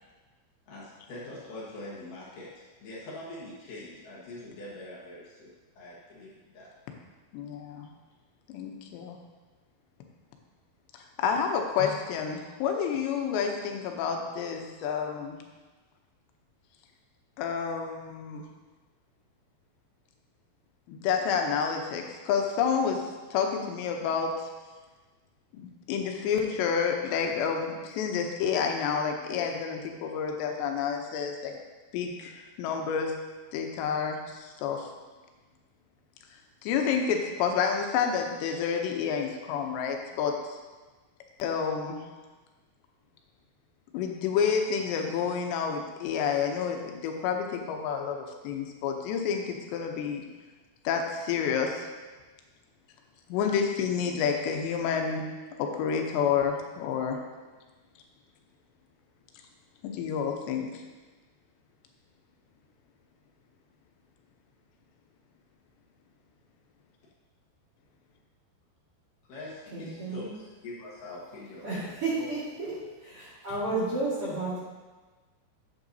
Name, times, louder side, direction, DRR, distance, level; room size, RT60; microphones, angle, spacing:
voice 1, 0.7-6.7 69.3-72.3 73.7-73.8, left 2 dB, 60° left, -6 dB, 2.7 m, -44 dB
voice 2, 7.3-7.9 8.5-9.2 10.9-15.4 17.4-18.4 20.9-24.3 25.5-31.6 31.9-33.2 33.5-34.9 36.6-40.6 41.4-42.0 43.9-50.2 50.8-51.9 53.3-55.3 55.6-57.2 59.8-60.8, left 6 dB, 85° left, 3 dB, 3.1 m, -29 dB
voice 3, 69.7-70.3 71.6-72.7 73.0-74.6, right 3 dB, 45° right, -9 dB, 2.2 m, -32 dB
11.0 x 8.2 x 2.7 m, 1.3 s
omnidirectional pair, 5.0 m